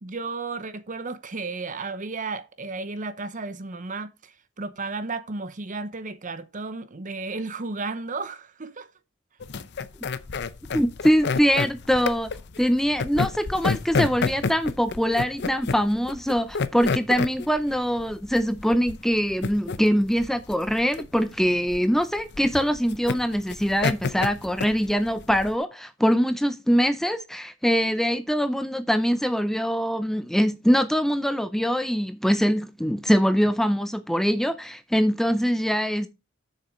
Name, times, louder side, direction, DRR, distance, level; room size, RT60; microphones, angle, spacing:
voice 1, 0.0-8.9, right 3 dB, 40° right, 0.8 m, -33 dB
sound 1, 9.4-25.6, left 4 dB, 55° left, 0.6 m, -29 dB
voice 2, 10.7-12.3 12.6-36.1, equal, ahead, 0.5 m, -23 dB
7.6 x 6.7 x 5.1 m
head